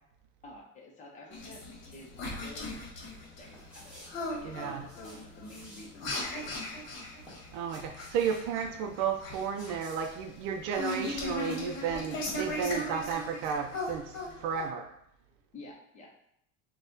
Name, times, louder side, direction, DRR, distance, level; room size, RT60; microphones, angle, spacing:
voice 1, 0.4-2.9 3.3-6.5 15.5-16.1, left 2 dB, 25° left, -2 dB, 0.8 m, -49 dB
sound 1, 1.3-14.7, left 1 dB, 55° left, 1.1 m, -38 dB
sound 2, 3.5-11.8 12.1-12.2, equal, 5° right, 1.3 m, -54 dB
voice 2, 4.4-4.8 7.5-14.9, right 7 dB, 80° right, 3 dB, 0.5 m, -33 dB
4.1 x 2.3 x 3.8 m, 0.74 s
cardioid pair, 165°, 31 cm